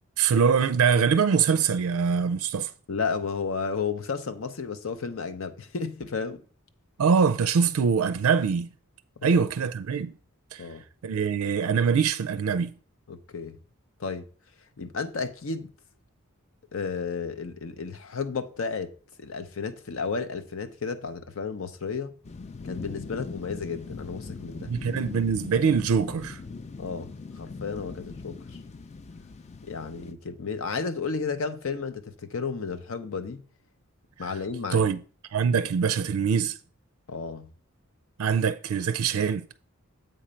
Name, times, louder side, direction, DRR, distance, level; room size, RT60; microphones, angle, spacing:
voice 1, 0.2-2.7 7.0-8.7 9.2-10.1 10.5-10.7 11.0-12.7 24.7-26.4 34.2-34.3 34.7-35.0 35.3-36.6 38.2-39.5, right 6 dB, 85° right, 0.4 m, -23 dB
voice 2, 2.9-6.4 9.2-9.4 10.6-10.8 13.1-13.6 14.0-14.3 14.8-15.7 16.7-18.9 19.2-22.1 22.6-24.7 26.8-28.6 29.6-33.4 34.2-34.8 37.1-37.5, left 5 dB, 65° left, 0.7 m, -33 dB
sound 1, 22.2-30.1, left 4 dB, 30° left, 0.4 m, -41 dB
7.8 x 4.3 x 5.1 m
head